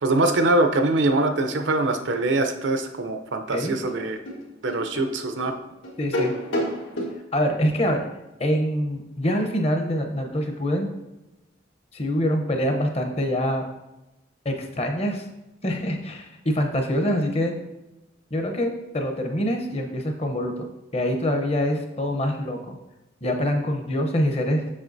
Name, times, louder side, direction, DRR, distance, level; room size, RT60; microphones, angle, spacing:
voice 1, 0.0-4.2 4.6-5.5, right 2 dB, 75° right, 7 dB, 0.6 m, -23 dB
sound 1, 3.3-3.4 3.9-7.1, equal, 85° left, 1.6 m, -30 dB
voice 2, 6.0-6.3 7.3-8.0 8.4-10.9 11.9-13.6 14.4-15.2 15.6-17.5 18.3-20.7 20.9-22.8 23.2-24.7, equal, 35° left, 4 dB, 0.8 m, -25 dB
7.4 x 6.4 x 2.7 m, 0.97 s
head